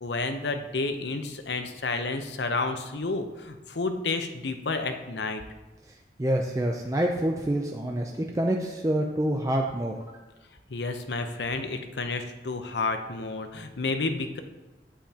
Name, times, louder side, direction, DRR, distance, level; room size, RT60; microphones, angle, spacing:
voice 1, 0.0-5.4 10.7-14.4, left 3 dB, 80° left, 7 dB, 0.8 m, -30 dB
voice 2, 6.2-9.9, right 1 dB, 20° right, 1 dB, 0.5 m, -27 dB
9.3 x 8.7 x 2.9 m, 1.1 s
head